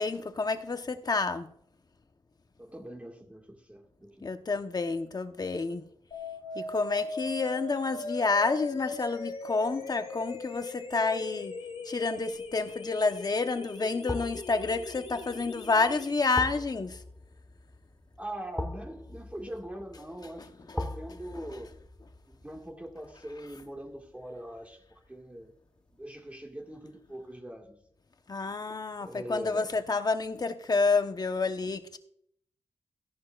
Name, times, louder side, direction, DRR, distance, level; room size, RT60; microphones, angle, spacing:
voice 1, 0.0-1.5 4.2-5.8 6.5-11.5 11.8-17.0 28.3-32.0, left 4 dB, 40° left, 1.0 m, -29 dB
voice 2, 2.6-4.3 18.2-21.7 22.3-25.5 26.0-27.8 29.0-29.7, right 1 dB, 15° right, 1.9 m, -42 dB
sound 1, 6.1-16.1, left 3 dB, 75° left, 1.9 m, -40 dB
sound 2, 12.3-12.7 14.1-25.1 25.4-25.5, left 1 dB, 10° left, 1.2 m, -42 dB
16.0 x 11.0 x 2.5 m
wide cardioid pair, 80°, 10 cm